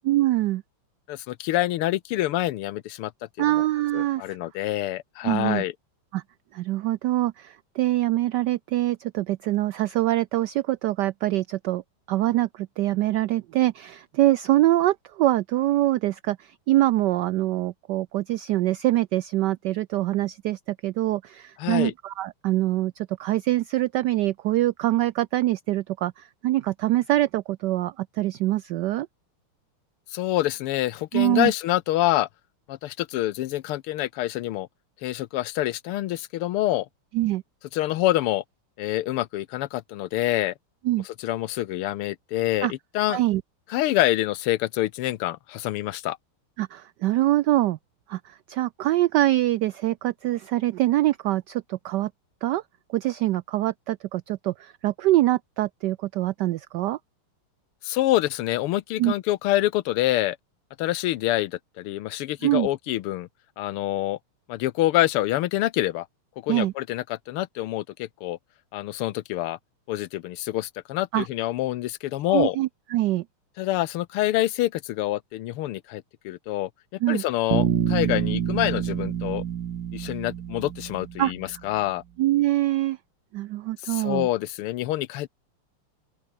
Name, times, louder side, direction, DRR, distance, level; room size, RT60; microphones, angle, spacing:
voice 1, 0.1-0.6 3.4-4.2 5.2-5.6 6.1-6.2 6.5-11.8 12.1-29.1 31.1-31.5 37.1-37.4 40.8-41.0 42.6-42.7 43.1-43.4 46.6-47.8 48.1-52.1 52.4-52.6 52.9-57.0 59.0-59.1 62.4-62.7 66.5-66.7 71.1-71.3 72.3-73.2 77.0-77.2 81.2-81.3 82.2-83.0 83.3-84.3, right 15 dB, 85° right, 0.9 m, -24 dB
voice 2, 1.1-3.1 3.4-3.6 3.9-5.7 21.6-21.9 30.1-32.3 32.7-34.7 35.0-36.9 37.7-38.4 38.8-40.5 41.2-43.2 43.7-46.2 57.8-60.4 60.8-63.3 63.6-64.2 64.5-66.1 66.4-68.4 68.7-69.6 69.9-72.6 73.6-76.7 77.1-79.4 79.9-82.0 83.8-85.3, left 15 dB, 85° left, 1.7 m, -26 dB
Bass guitar, 77.5-81.5, right 9 dB, 60° right, 1.7 m, -27 dB
open air
omnidirectional pair, 2.4 m